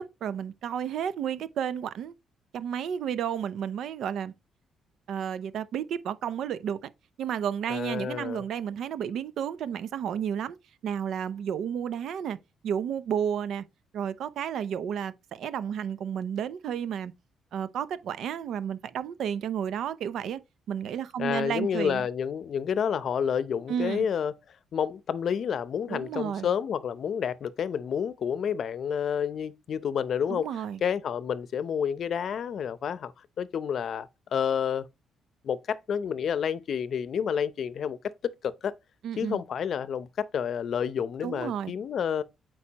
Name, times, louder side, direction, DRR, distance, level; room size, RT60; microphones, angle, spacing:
voice 1, 0.0-2.1 2.5-4.3 5.1-6.8 7.2-10.6 10.8-12.4 12.6-13.6 13.9-17.1 17.5-20.4 20.7-22.0 23.7-24.0 25.9-26.5 30.3-30.8 39.0-39.4 41.2-41.7, right 8 dB, 75° right, 0.6 m, -32 dB
voice 2, 7.7-8.4 21.2-24.3 24.7-30.5 30.8-33.1 33.4-34.9 35.4-38.7 39.2-42.2, left 7 dB, 60° left, 0.6 m, -29 dB
8.5 x 4.7 x 2.9 m
cardioid pair, 90°, 0 cm